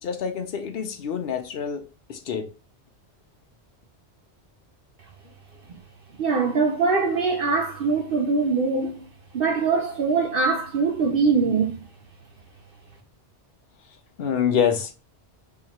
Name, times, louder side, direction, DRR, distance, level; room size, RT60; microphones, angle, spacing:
voice 1, 0.0-2.5 14.2-14.9, left 7 dB, 65° left, 0.8 m, -26 dB
voice 2, 6.2-9.1 9.3-11.8, right 4 dB, 60° right, 0.7 m, -22 dB
2.9 x 2.9 x 4.1 m
omnidirectional pair, 1.1 m